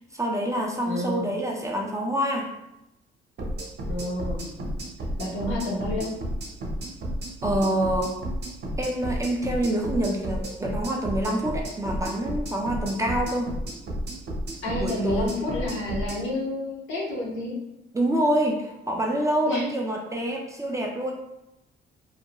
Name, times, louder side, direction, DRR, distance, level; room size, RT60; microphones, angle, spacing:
voice 1, 0.1-2.5 7.4-8.2 8.8-13.5 14.7-15.3 17.9-21.1, right 1 dB, 15° right, 0 dB, 0.4 m, -26 dB
voice 2, 0.9-1.3 3.9-4.4 5.2-6.1 14.6-17.5 19.5-19.6, left 1 dB, 75° left, -3 dB, 0.9 m, -29 dB
sound 1, 3.4-16.2, equal, 55° right, 0.8 m, -32 dB
2.4 x 2.1 x 2.8 m, 0.89 s
cardioid pair, 90°, 20 cm